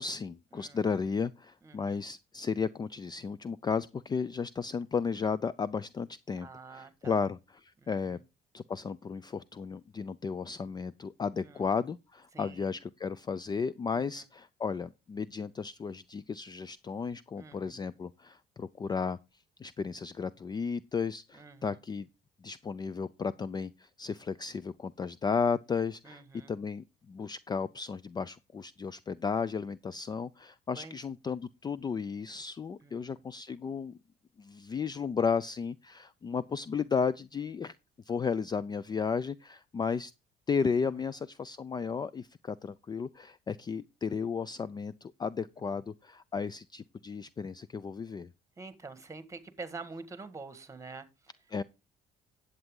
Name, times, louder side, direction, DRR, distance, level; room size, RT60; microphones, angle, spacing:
voice 1, 0.0-8.2 8.5-19.2 19.6-22.1 22.4-26.2 26.5-34.0 34.4-37.7 38.1-40.1 40.5-48.3 51.5-51.6, left 5 dB, 25° left, 0.4 m, -34 dB
voice 2, 0.5-0.9 1.6-2.0 6.4-7.2 7.8-8.2 11.4-11.6 12.3-12.7 13.9-14.3 17.4-17.8 21.3-21.8 26.0-26.5 30.7-31.0 32.8-33.0 40.8-41.0 48.6-51.1, right 4 dB, 20° right, 1.7 m, -47 dB
11.0 x 8.0 x 3.7 m
cardioid pair, 110°, 17 cm